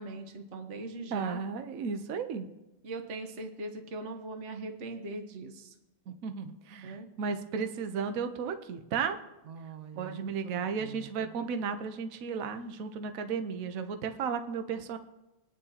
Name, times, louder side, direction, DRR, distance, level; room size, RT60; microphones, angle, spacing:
voice 1, 0.0-1.4 2.8-5.7 6.8-7.1 9.5-11.3, right 3 dB, 40° right, 5 dB, 1.2 m, -41 dB
voice 2, 1.1-2.5 6.1-9.2 10.0-15.0, right 6 dB, 55° right, 7 dB, 0.9 m, -34 dB
24.0 x 9.6 x 2.9 m, 0.99 s
omnidirectional pair, 2.4 m